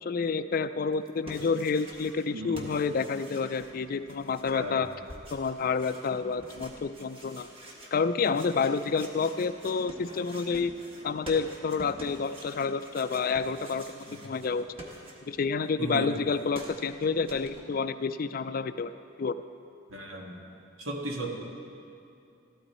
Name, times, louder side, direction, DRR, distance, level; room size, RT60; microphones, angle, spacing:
voice 1, 0.0-4.9 5.3-7.5 7.9-10.7 11.0-14.6 15.3-18.9 19.2-19.4, left 5 dB, 45° left, 12 dB, 0.3 m, -29 dB
sound 1, 0.9-2.3 2.5-15.5 15.8-17.6, equal, 30° right, 1.4 m, -48 dB
voice 2, 2.3-2.7 4.5-4.8 14.1-14.2 15.8-16.2 19.9-20.4 20.8-21.3, right 1 dB, 80° right, 1 dB, 1.7 m, -36 dB
14.0 x 13.0 x 4.3 m, 2.7 s
head